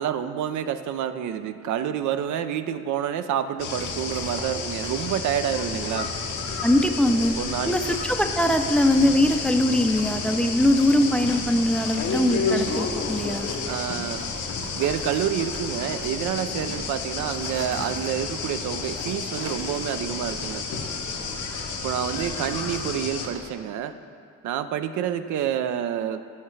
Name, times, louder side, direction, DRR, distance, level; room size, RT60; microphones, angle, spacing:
voice 1, 0.0-6.1 7.4-8.0 13.7-14.3 14.7-20.6 21.8-24.0 24.4-26.2, right 9 dB, 75° right, 10 dB, 0.5 m, -28 dB
sound 1, 3.6-23.3, left 4 dB, 75° left, 0.9 m, -31 dB
sound 2, 3.8-23.5, right 2 dB, 50° right, 1.5 m, -44 dB
voice 2, 6.6-7.3 7.7-13.5, left 1 dB, 5° left, 6 dB, 0.4 m, -21 dB
14.5 x 5.5 x 3.2 m, 2.2 s
cardioid pair, 90°, 30 cm